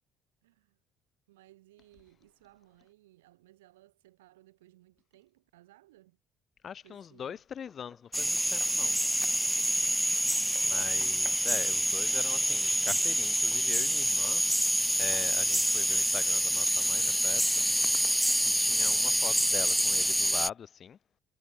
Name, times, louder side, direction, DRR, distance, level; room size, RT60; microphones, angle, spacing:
voice 1, 0.4-0.8 1.3-6.2 6.8-7.4 12.0-12.3, right 17 dB, 75° right, 5.6 m, -60 dB
voice 2, 6.6-9.0 10.6-14.5 15.0-17.6 18.4-21.0, left 8 dB, 45° left, 0.9 m, -42 dB
Knock, 7.7-8.8 10.3-11.5 13.5-13.7 14.2-14.5 15.1-15.3, left 2 dB, 15° left, 3.3 m, -55 dB
sound 1, 8.1-20.5, equal, 5° right, 0.4 m, -27 dB
figure-of-eight pair, 50°, 0 cm